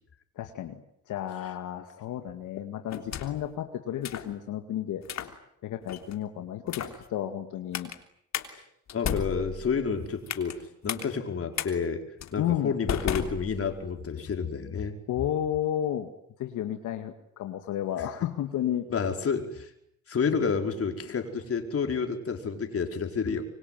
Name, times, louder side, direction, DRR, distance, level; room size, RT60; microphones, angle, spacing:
voice 1, 0.4-0.8 1.1-5.4 5.6-6.9 7.1-7.9 12.4-12.8 15.1-16.1 16.4-18.9, left 11 dB, 80° left, 6 dB, 2.2 m, -32 dB
sound 1, 2.9-3.5 4.0-4.3 5.0-5.3 5.9-6.2 6.7-7.0 7.7-8.0 8.3-8.5 8.9-10.6 10.9-11.0 11.6-11.7 12.2-12.4 12.9-13.9, left 9 dB, 65° left, 3.3 m, -34 dB
voice 2, 8.9-10.5 10.8-12.0 12.3-15.0 18.9-19.7 20.1-23.4, left 5 dB, 50° left, 5 dB, 5.0 m, -29 dB
26.0 x 24.0 x 9.3 m, 0.72 s
cardioid pair, 90°, 30 cm